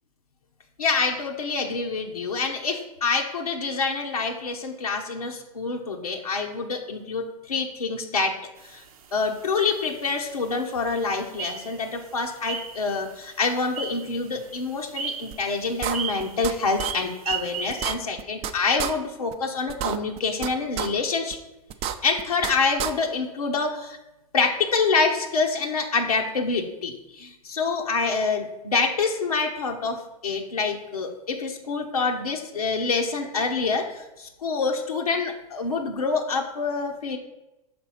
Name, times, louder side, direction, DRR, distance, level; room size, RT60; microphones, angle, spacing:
voice 1, 0.8-8.4 8.6-8.8 9.1-21.4 22.0-24.0 24.3-37.2, left 4 dB, 90° left, 2 dB, 0.9 m, -26 dB
sound 1, 8.6-17.9, right 6 dB, 75° right, 0.7 m, -37 dB
sound 2, 15.3-15.4 15.8-16.5 16.8-16.9 17.3-17.4 17.7-18.5 18.8-18.9 19.3-19.4 19.7-20.5 20.8-20.9 21.3-21.4 21.7-22.5 22.8-22.9, right 10 dB, 35° right, 0.5 m, -29 dB
6.1 x 4.0 x 5.5 m, 0.95 s
hypercardioid pair, 105°, 19 cm